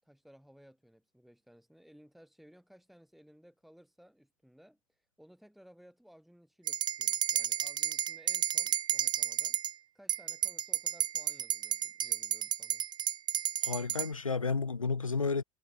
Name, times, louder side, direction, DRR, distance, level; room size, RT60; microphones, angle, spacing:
voice 1, 0.0-12.8, equal, ahead, 7.9 m, -59 dB
sound 1, 6.7-9.7 10.1-14.1, right 10 dB, 25° right, 0.5 m, -32 dB
voice 2, 13.6-15.4, left 4 dB, 90° left, 0.6 m, -31 dB
figure-of-eight pair, 75°, 17 cm